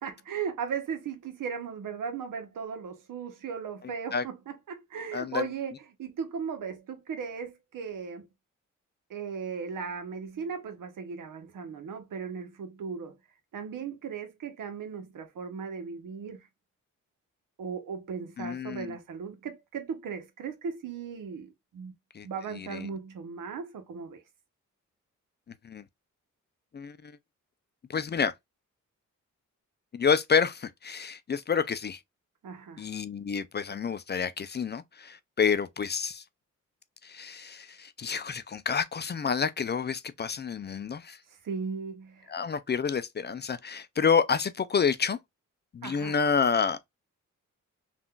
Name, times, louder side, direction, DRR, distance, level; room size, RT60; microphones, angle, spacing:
voice 1, 0.0-4.4 4.7-8.3 9.1-13.2 13.5-16.4 17.6-21.9 22.2-24.2 32.4-32.8 41.4-42.3 45.8-46.1, right 6 dB, 80° right, 0.9 m, -37 dB
voice 2, 5.1-5.5 18.4-19.0 22.1-22.3 22.6-22.9 25.6-25.8 26.7-27.2 27.9-28.3 29.9-32.0 32.8-36.2 37.0-41.2 42.3-45.2 45.7-46.8, left 6 dB, 35° left, 0.4 m, -29 dB
3.6 x 2.5 x 2.2 m
cardioid pair, 65°, 32 cm